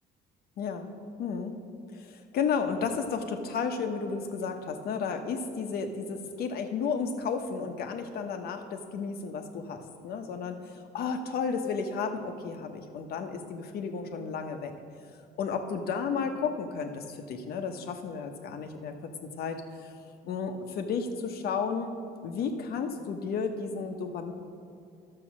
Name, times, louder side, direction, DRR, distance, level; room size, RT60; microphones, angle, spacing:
voice 1, 0.6-0.9 1.2-1.5 1.9-14.7 15.4-19.9 20.2-21.9 22.2-24.3, left 5 dB, 65° left, 5 dB, 1.1 m, -33 dB
12.0 x 6.8 x 6.2 m, 2.4 s
cardioid pair, 110°, 17 cm